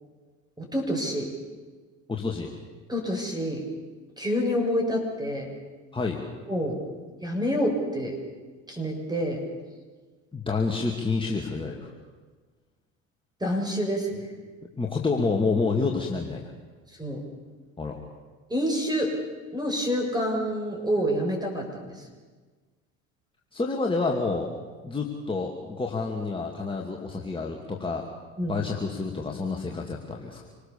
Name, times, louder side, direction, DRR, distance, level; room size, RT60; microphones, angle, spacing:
voice 1, 0.6-1.3 2.9-3.6 4.2-5.5 6.5-6.8 7.2-8.1 8.7-9.4 13.4-14.3 17.0-17.2 18.5-19.1 19.5-22.1 28.4-28.5, equal, 10° right, 2 dB, 6.7 m, -27 dB
voice 2, 2.1-2.5 5.9-6.2 10.3-11.9 14.8-16.5 17.8-18.0 23.5-24.5 24.8-28.1 28.5-30.4, left 4 dB, 15° left, -1 dB, 2.6 m, -28 dB
26.5 x 19.0 x 7.1 m, 1.4 s
hypercardioid pair, 80°, 39 cm